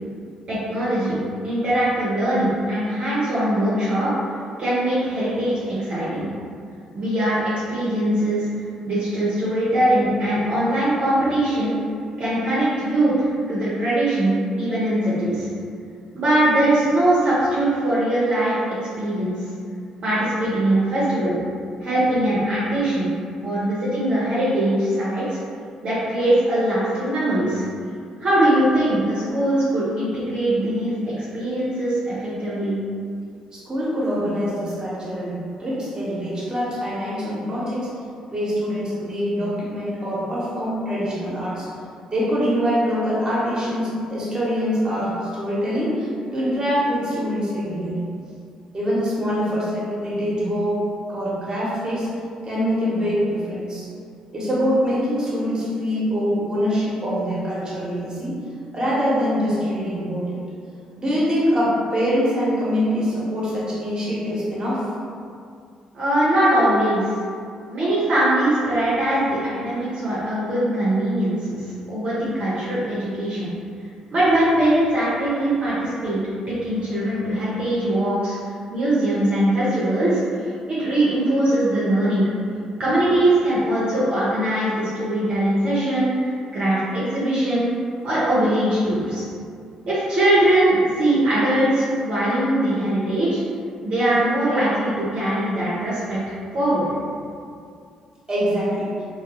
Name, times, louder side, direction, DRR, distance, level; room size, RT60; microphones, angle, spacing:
voice 1, 0.5-1.2 1.4-4.1 4.6-6.2 6.9-8.4 8.8-11.8 12.2-15.5 16.1-19.3 20.0-21.4 21.8-23.1 23.4-25.4 25.8-27.6 28.2-32.8 65.9-67.0 67.7-71.6 71.9-73.5 74.1-76.2 76.5-78.4 78.7-82.2 82.8-87.7 88.0-89.2 89.9-93.4 93.8-96.9, right 1 dB, 55° right, -10 dB, 0.7 m, -21 dB
voice 2, 33.5-37.9 38.3-41.7 42.1-48.1 48.7-50.8 51.1-52.1 52.4-53.9 54.3-58.4 58.7-60.4 61.0-64.8 66.5-66.6 98.3-98.9, equal, 30° right, -7 dB, 1.0 m, -24 dB
2.2 x 2.1 x 2.9 m, 2.3 s
hypercardioid pair, 50°, 2 cm